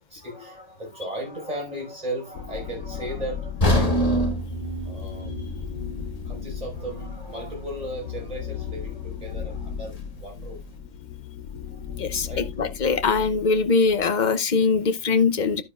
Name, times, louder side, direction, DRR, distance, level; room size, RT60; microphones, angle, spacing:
voice 1, 0.0-4.3 4.8-5.6 6.2-10.6 11.5-12.5, right 1 dB, 25° right, 5.2 m, -36 dB
sound 1, 2.3-14.1, left 7 dB, 80° left, 1.1 m, -36 dB
sound 2, 3.6-7.7 8.0-8.2 8.8-8.9, equal, 25° left, 1.8 m, -26 dB
voice 2, 12.0-15.6, left 4 dB, 40° left, 0.7 m, -22 dB
11.0 x 9.6 x 2.4 m
omnidirectional pair, 1.5 m